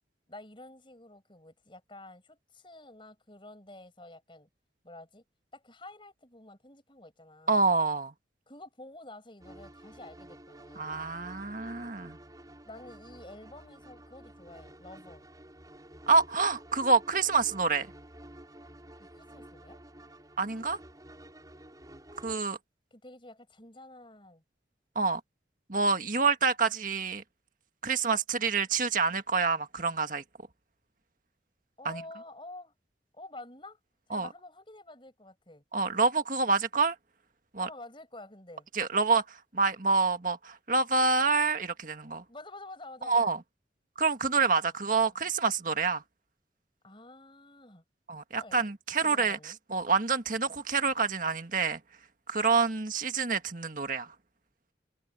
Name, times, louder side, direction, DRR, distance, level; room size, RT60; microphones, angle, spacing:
voice 1, 0.3-4.5 4.8-5.2 5.5-7.6 8.5-11.0 12.6-15.3 19.0-19.8 22.9-24.4 31.8-32.7 33.1-33.8 34.1-35.6 37.6-38.7 42.3-43.3 44.6-45.3 46.8-47.8 48.4-48.6 49.0-49.6, left 2 dB, 30° left, 7.4 m, -49 dB
voice 2, 7.5-8.1 10.7-12.2 16.1-17.9 20.4-20.8 22.2-22.6 24.9-25.2 25.7-27.2 27.8-30.2 31.8-32.0 34.1-34.3 35.7-36.9 37.5-37.7 38.7-42.2 43.0-43.4 44.0-46.0 48.1-51.8 52.3-54.1, right 4 dB, 50° right, 1.7 m, -27 dB
sound 1, 9.4-22.4, right 1 dB, 20° right, 6.6 m, -51 dB
head